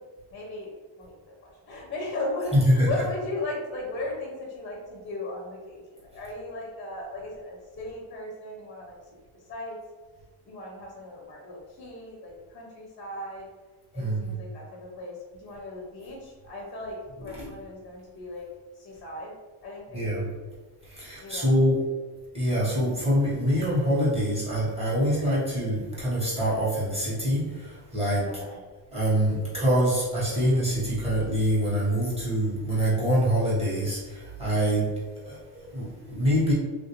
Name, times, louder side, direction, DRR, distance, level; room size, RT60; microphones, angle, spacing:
voice 1, 0.3-1.1 1.4-5.8 6.1-9.0 9.5-9.8 10.5-13.5 13.9-15.2 15.4-18.5 18.8-19.3 19.6-20.2 21.2-21.6 28.2-28.6, left 2 dB, 25° left, -1 dB, 0.4 m, -37 dB
voice 2, 2.5-2.9 14.0-14.3 17.2-17.5 19.9-20.3 20.9-21.8 22.3-28.3 28.9-34.9 35.2-36.5, equal, 15° right, -7 dB, 0.9 m, -25 dB
3.3 x 2.4 x 2.8 m, 1.4 s
cardioid pair, 170°, 48 cm